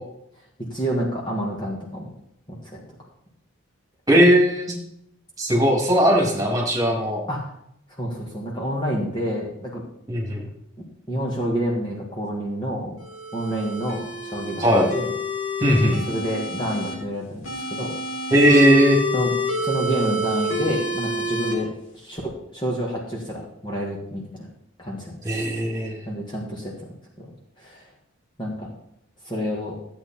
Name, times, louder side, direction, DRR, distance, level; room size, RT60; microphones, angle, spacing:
voice 1, 0.6-2.1 2.5-2.8 7.3-7.5 8.0-9.8 11.1-12.9 13.3-14.7 14.9-15.1 16.1-17.4 17.7-17.9 19.1-19.3 19.6-21.7 21.9-24.5 24.8-25.1 26.1-26.7 27.2-27.3 27.6-27.8 28.4-28.7 29.3-29.8, equal, 20° left, -3 dB, 1.9 m, -28 dB
voice 2, 4.1-4.8 5.4-7.2 10.1-10.4 14.6-14.9 15.6-16.0 18.3-19.0 25.2-26.0, equal, 15° right, -2 dB, 2.8 m, -18 dB
sound 1, 13.0-16.9 17.4-21.5, left 1 dB, 80° left, 3.9 m, -28 dB
14.0 x 8.6 x 4.4 m, 0.76 s
head